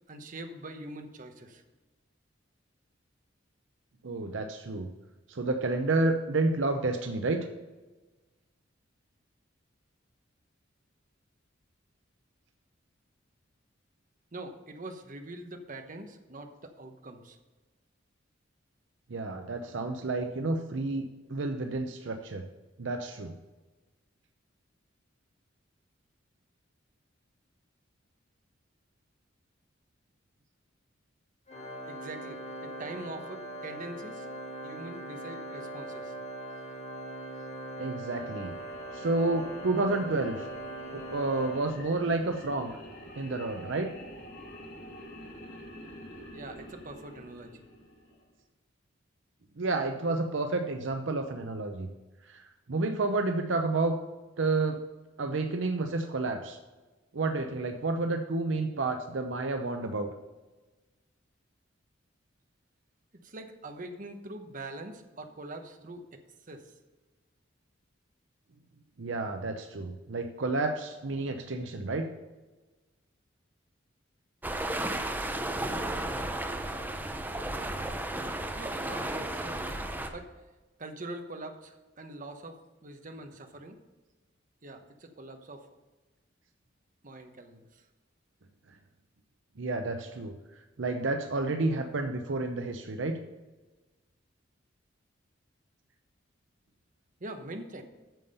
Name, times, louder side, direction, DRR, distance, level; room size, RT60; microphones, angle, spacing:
voice 1, 0.1-1.6 14.3-17.4 31.9-34.3 34.6-36.1 46.3-47.5 63.2-66.0 66.5-66.6 78.6-79.8 80.1-80.3 80.8-83.8 84.6-85.6 87.0-87.8 97.2-97.8, right 2 dB, 40° right, 5 dB, 1.0 m, -43 dB
voice 2, 4.0-4.9 5.3-7.5 19.1-22.5 22.8-23.3 37.8-38.5 38.9-40.5 40.9-42.7 43.2-43.9 49.6-51.9 52.3-52.4 52.7-54.0 54.4-54.8 55.2-56.6 57.1-60.1 69.0-72.1 89.6-90.3 90.8-93.2, right 2 dB, 65° right, 6 dB, 0.7 m, -30 dB
Organ, 31.5-42.3, right 1 dB, 35° left, 1.5 m, -41 dB
sound 1, 38.0-48.3, equal, 60° left, 2.4 m, -48 dB
sound 2, 74.4-80.1, right 1 dB, 10° right, 0.7 m, -33 dB
9.1 x 7.1 x 5.5 m, 1.2 s
head